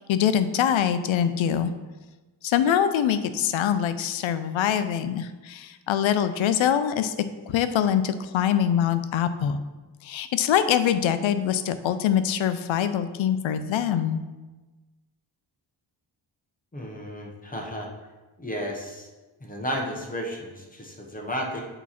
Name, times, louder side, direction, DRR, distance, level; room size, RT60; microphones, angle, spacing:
voice 1, 0.1-1.7 2.4-7.2 7.5-9.6 10.0-14.2, left 9 dB, 85° left, 11 dB, 0.5 m, -24 dB
voice 2, 16.7-17.9 18.4-19.1 19.4-21.6, equal, 20° left, 0 dB, 0.8 m, -33 dB
8.3 x 3.0 x 4.2 m, 1.2 s
wide cardioid pair, 135°, 45 cm